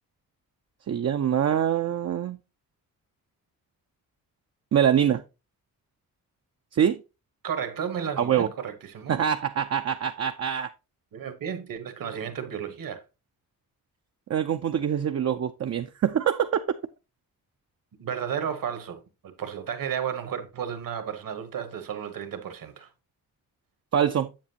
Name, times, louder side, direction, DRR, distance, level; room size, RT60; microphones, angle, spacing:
voice 1, 0.9-2.4 4.7-5.2 6.7-7.0 8.2-8.5 9.1-10.7 14.3-16.6 23.9-24.3, right 9 dB, 45° right, 0.5 m, -24 dB
voice 2, 7.4-9.2 11.1-13.0 18.0-22.9, right 8 dB, 65° right, 1.3 m, -33 dB
7.4 x 7.2 x 2.8 m
cardioid pair, 70°, 36 cm